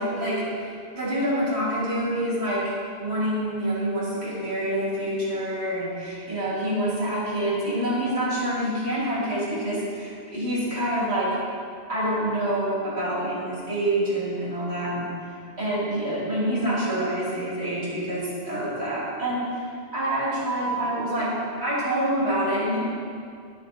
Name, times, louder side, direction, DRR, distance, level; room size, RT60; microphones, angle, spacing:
voice 1, 0.0-2.7 3.0-11.4 11.9-15.1 15.6-19.6 19.9-22.8, right 1 dB, 75° right, -8 dB, 3.1 m, -27 dB
12.0 x 6.6 x 4.1 m, 2.3 s
omnidirectional pair, 1.1 m